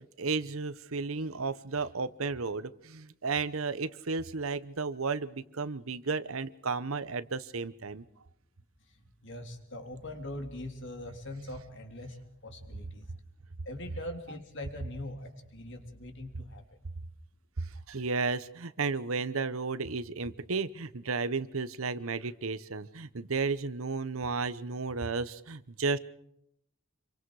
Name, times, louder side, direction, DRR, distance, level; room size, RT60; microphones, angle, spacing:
voice 1, 0.0-8.0 17.6-26.0, right 4 dB, 75° right, 15 dB, 1.0 m, -33 dB
voice 2, 9.2-13.1 13.6-16.6, left 1 dB, 60° left, 5 dB, 3.5 m, -42 dB
27.5 x 24.0 x 4.9 m, 0.76 s
head